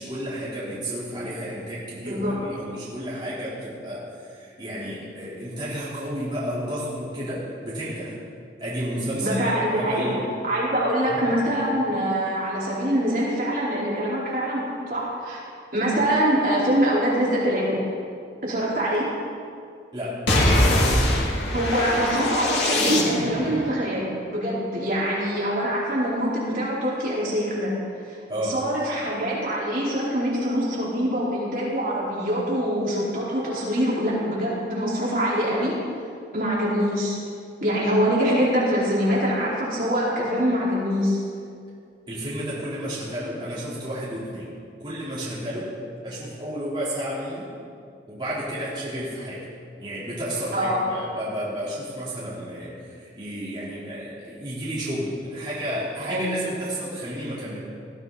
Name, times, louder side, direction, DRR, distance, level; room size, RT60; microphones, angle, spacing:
voice 1, 0.0-8.2 8.6-9.4 9.7-10.2 11.1-11.2 19.9-20.2 28.3-28.6 42.1-44.5 44.8-45.7 46.0-47.5 48.1-49.5 49.8-57.6, equal, 25° right, -10 dB, 4.0 m, -32 dB
voice 2, 2.1-2.4 9.2-10.1 10.5-15.4 15.7-17.8 18.4-19.1 21.5-27.7 28.1-28.2 28.4-35.7 36.3-37.2 37.6-41.2 50.5-50.9 56.1-56.4, equal, 50° right, -7 dB, 4.6 m, -24 dB
sound 1, 20.3-23.5, left 1 dB, 80° left, 2.7 m, -22 dB
20.5 x 14.0 x 4.2 m, 2.3 s
head